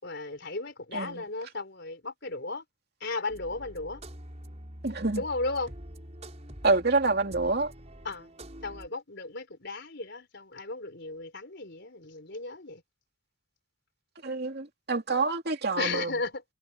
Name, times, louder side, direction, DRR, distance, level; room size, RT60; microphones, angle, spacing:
voice 1, 0.0-2.6 3.0-4.0 5.2-5.7 8.0-8.3 8.6-12.8 15.8-16.4, left 3 dB, 55° left, 4.3 m, -35 dB
sound 1, 3.3-8.9, right 1 dB, 35° right, 5.5 m, -46 dB
voice 2, 4.8-5.2 6.6-7.7 14.2-16.1, right 3 dB, 50° right, 2.7 m, -27 dB
head